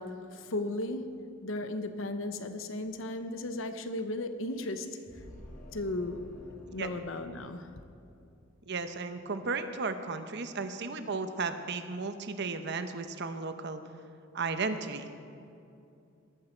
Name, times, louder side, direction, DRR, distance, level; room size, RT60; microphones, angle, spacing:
voice 1, 0.0-5.0 5.7-6.3 6.7-7.7, left 2 dB, 65° left, 9 dB, 0.9 m, -35 dB
sound 1, 5.1-8.5, equal, 40° left, 3.8 m, -51 dB
voice 2, 8.7-13.8 14.3-15.1, right 4 dB, 55° right, 8 dB, 0.9 m, -34 dB
18.0 x 13.0 x 4.5 m, 2.6 s
head